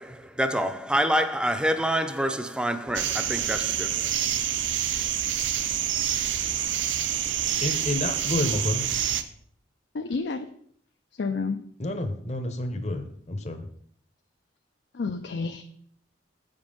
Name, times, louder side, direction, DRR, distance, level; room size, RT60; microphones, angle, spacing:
voice 1, 0.0-4.3, equal, 5° right, 0.5 m, -27 dB
sound 1, 2.9-9.2, right 10 dB, 85° right, 0.6 m, -27 dB
voice 2, 7.6-8.9 11.8-13.6, left 2 dB, 40° left, 0.8 m, -29 dB
voice 3, 9.9-10.5 11.2-11.6 14.9-15.6, left 4 dB, 65° left, 0.5 m, -29 dB
8.1 x 5.3 x 5.3 m
head